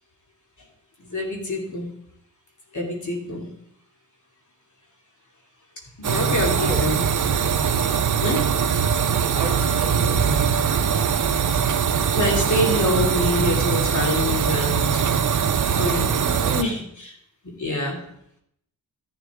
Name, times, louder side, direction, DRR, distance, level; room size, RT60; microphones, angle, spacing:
voice 1, 1.0-1.9 2.7-3.5 6.0-7.0 8.2-8.4 11.4-11.5 12.1-15.1 15.7-17.1 17.6-18.1, left 1 dB, 55° left, -1 dB, 2.7 m, -26 dB
sound 1, 6.0-16.6, right 7 dB, 55° right, 0.6 m, -21 dB
voice 2, 9.3-10.3 16.1-16.7, right 2 dB, 20° right, -2 dB, 2.9 m, -34 dB
13.5 x 6.8 x 3.6 m, 0.72 s
wide cardioid pair, 85°, 36 cm